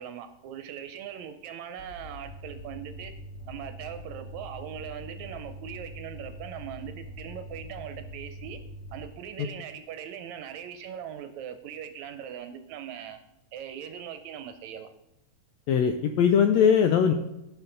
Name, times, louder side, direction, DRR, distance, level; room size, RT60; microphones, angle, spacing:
voice 1, 0.0-3.1 3.5-8.6 8.9-13.2 13.5-14.9, right 9 dB, 75° right, 9 dB, 1.8 m, -40 dB
sound 1, 1.8-9.1, equal, 25° left, 1.7 m, -43 dB
voice 2, 15.7-17.1, left 7 dB, 85° left, 7 dB, 1.5 m, -21 dB
15.5 x 5.8 x 3.9 m, 0.94 s
omnidirectional pair, 3.7 m